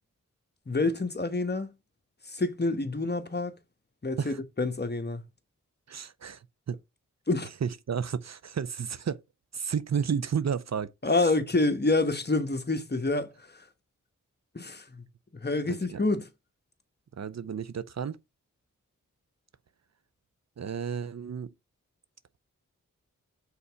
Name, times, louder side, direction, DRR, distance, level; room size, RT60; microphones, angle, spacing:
voice 1, 0.7-1.7 2.3-3.6 4.0-5.2 7.3-7.5 11.0-13.3 14.5-15.0 15.4-16.3, left 2 dB, 30° left, 1.2 m, -27 dB
voice 2, 5.9-6.8 7.6-9.2 9.5-10.9 11.2-11.3 15.7-16.0 17.2-18.2 20.6-21.5, right 7 dB, 55° right, 0.6 m, -32 dB
5.6 x 4.0 x 4.6 m
cardioid pair, 40°, 32 cm